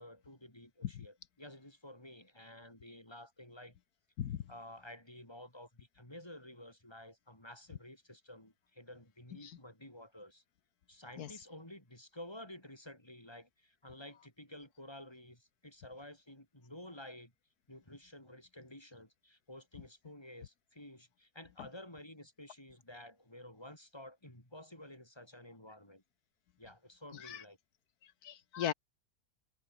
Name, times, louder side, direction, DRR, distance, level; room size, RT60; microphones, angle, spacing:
voice 1, 0.0-3.8 4.5-10.4 10.9-17.3 17.7-26.0 26.6-27.6, left 1 dB, 15° left, 5.5 m, -52 dB
voice 2, 27.1-27.4 28.0-28.7, left 10 dB, 85° left, 1.5 m, -38 dB
omnidirectional pair, 1.6 m